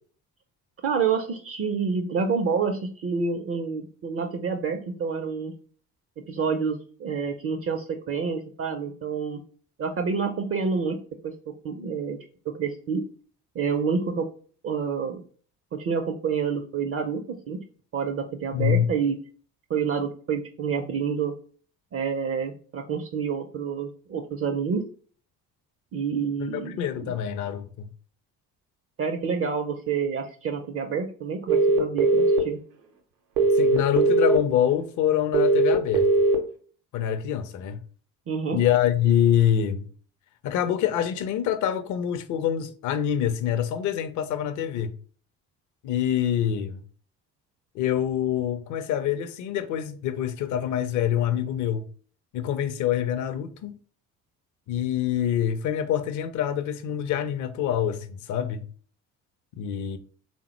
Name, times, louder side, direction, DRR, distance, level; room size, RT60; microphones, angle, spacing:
voice 1, 0.8-5.5 6.3-9.4 9.8-12.2 12.5-13.1 13.5-14.3 14.6-15.2 15.7-17.6 17.9-19.2 19.7-21.3 21.9-24.8 25.9-27.1 29.0-32.6 38.3-38.6, right 5 dB, 30° right, 0.4 m, -28 dB
voice 2, 18.5-18.9 26.5-27.9 33.5-36.1 36.9-37.8 38.5-39.9 40.4-45.0 45.8-46.8 47.7-51.8 52.3-53.8 54.7-58.7 59.6-60.0, left 10 dB, 40° left, 0.5 m, -25 dB
sound 1, 31.5-32.4 33.4-34.4 35.3-36.3, right 3 dB, 80° right, 0.7 m, -19 dB
3.5 x 2.1 x 2.9 m
figure-of-eight pair, 50°, 48 cm